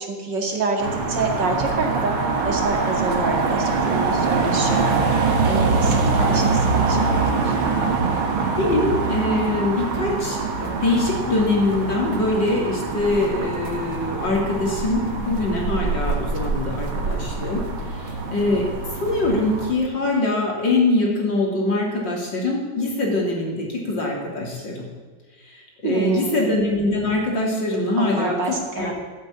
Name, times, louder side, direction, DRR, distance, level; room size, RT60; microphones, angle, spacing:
voice 1, 0.0-7.6 25.8-26.5 28.0-28.9, right 3 dB, 60° right, 2 dB, 2.8 m, -27 dB
sound 1, 0.8-19.7, right 4 dB, 85° right, 2.3 m, -24 dB
voice 2, 8.6-17.6 18.3-18.6 18.9-24.9 25.5-28.9, left 2 dB, 65° left, -2 dB, 3.8 m, -23 dB
13.5 x 9.6 x 8.6 m, 1.4 s
omnidirectional pair, 2.2 m